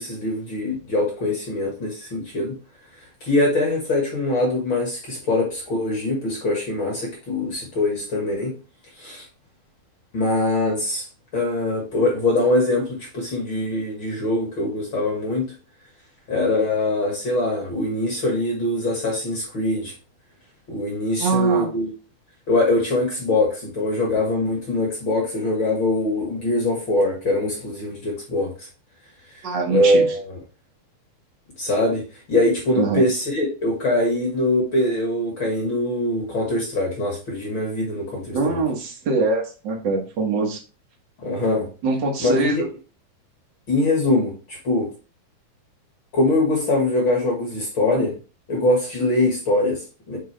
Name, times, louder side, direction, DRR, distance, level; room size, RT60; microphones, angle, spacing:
voice 1, 0.0-2.5 3.2-8.5 9.0-9.2 10.1-11.1 11.3-15.4 16.3-19.9 20.7-21.9 22.5-28.7 29.7-30.4 31.6-32.0 32.3-38.5 41.2-41.7 42.2-42.6 43.7-44.9 46.1-48.1 48.5-50.2, left 2 dB, 50° left, 0 dB, 1.7 m, -22 dB
voice 2, 21.2-21.7 29.4-30.0 32.8-33.0 38.3-40.6 41.8-42.6, right 3 dB, 80° right, -1 dB, 1.0 m, -23 dB
7.7 x 3.9 x 3.2 m, 0.33 s
omnidirectional pair, 3.9 m